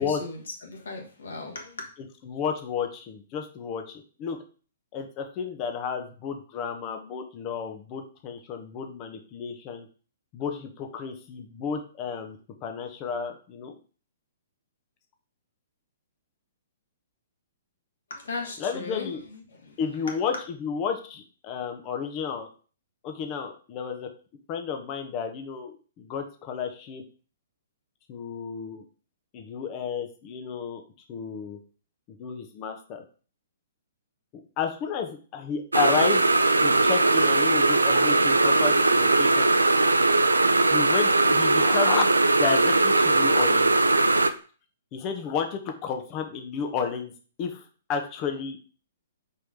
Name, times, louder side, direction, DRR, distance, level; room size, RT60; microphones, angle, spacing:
voice 1, 0.0-1.9 18.1-19.2 19.5-19.7, left 3 dB, 60° left, 1.8 m, -37 dB
voice 2, 2.2-4.4 4.9-9.9 10.3-13.8 18.6-19.2 19.8-22.5 23.0-24.1 24.5-27.0 28.1-28.8 29.3-30.8 31.1-31.6 32.1-33.0 34.6-36.2 36.6-39.6 39.8-40.0 40.3-40.4 40.7-42.1 42.4-43.7 44.9-47.1 47.4-48.6, left 6 dB, 30° left, 1.2 m, -32 dB
sound 1, 35.7-44.3, right 2 dB, 80° right, 0.5 m, -20 dB
5.0 x 4.7 x 5.0 m
figure-of-eight pair, 115°, 0 cm